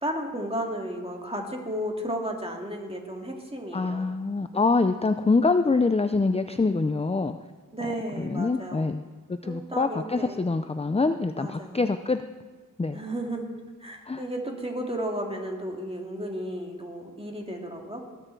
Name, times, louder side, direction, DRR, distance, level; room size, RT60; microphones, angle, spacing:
voice 1, 0.0-4.0 7.7-8.9 9.4-10.4 11.4-11.8 12.9-13.5 13.8-18.0, right 1 dB, 15° right, 1 dB, 2.2 m, -33 dB
voice 2, 3.7-7.4 8.2-12.2 12.8-13.0 14.1-14.2, left 3 dB, 20° left, 9 dB, 0.4 m, -25 dB
19.5 x 9.0 x 4.6 m, 1.4 s
wide cardioid pair, 60°, 33 cm